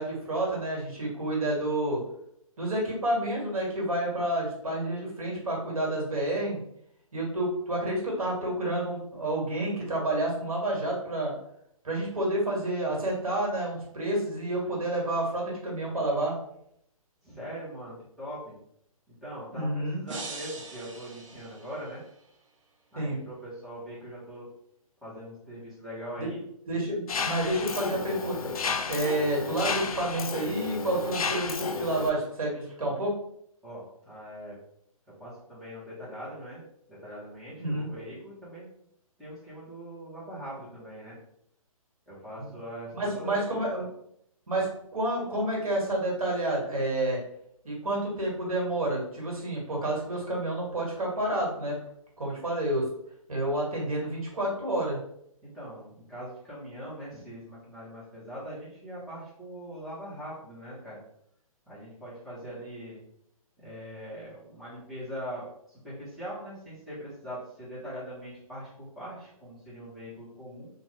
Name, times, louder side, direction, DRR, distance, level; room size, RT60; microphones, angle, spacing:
voice 1, 0.0-2.0 2.6-6.6 7.1-11.3 11.8-16.4 19.5-20.0 22.9-23.2 26.2-26.3 26.7-28.5 28.9-33.1 37.6-37.9 42.9-43.9 44.5-47.2 47.6-51.8 52.2-52.8 53.3-55.0, right 1 dB, 75° right, -3 dB, 1.5 m, -29 dB
voice 2, 17.2-18.6 19.1-22.0 22.9-24.4 25.0-26.4 33.6-34.5 35.2-36.6 36.9-38.7 39.2-41.2 42.1-43.3 55.4-61.0 61.7-63.0 63.6-70.7, equal, ahead, -11 dB, 1.1 m, -41 dB
sound 1, 20.1-22.2, right 3 dB, 60° right, 0.7 m, -42 dB
Mechanisms, 27.1-32.1, left 5 dB, 75° left, 0.4 m, -32 dB
2.6 x 2.4 x 3.2 m, 0.72 s
figure-of-eight pair, 130°, 19 cm